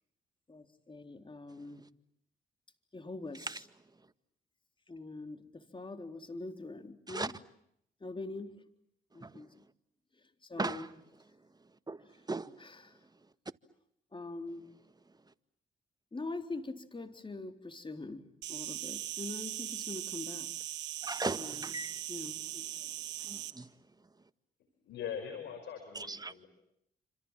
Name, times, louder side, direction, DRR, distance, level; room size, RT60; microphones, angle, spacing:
voice 1, 0.5-1.9 2.9-3.5 4.9-7.3 8.0-8.6 9.1-9.6 10.2-10.9 12.6-13.0 14.1-14.7 16.1-20.5 21.4-21.8 22.1-23.0, left 3 dB, 30° left, 3.9 m, -44 dB
voice 2, 10.6-10.9 11.9-12.6 21.0-22.0 23.2-23.7 25.9-26.3, right 3 dB, 20° right, 1.8 m, -38 dB
Insect, 18.4-23.5, right 13 dB, 80° right, 1.6 m, -40 dB
voice 3, 24.8-26.5, left 8 dB, 80° left, 5.4 m, -41 dB
29.0 x 27.0 x 7.5 m
supercardioid pair, 55°, 18 cm